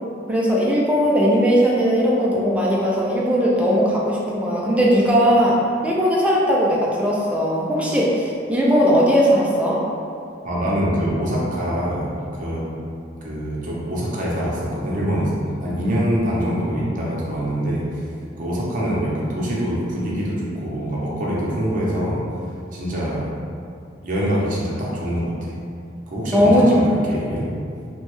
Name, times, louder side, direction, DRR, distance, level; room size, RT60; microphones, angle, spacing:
voice 1, 0.3-9.8 26.3-26.9, equal, 5° right, -5 dB, 0.4 m, -18 dB
voice 2, 10.4-12.6 13.2-17.8 18.4-22.2 22.7-23.3 24.0-25.3 26.1-27.5, equal, 45° right, -6 dB, 0.7 m, -24 dB
3.0 x 2.3 x 3.1 m, 2.5 s
head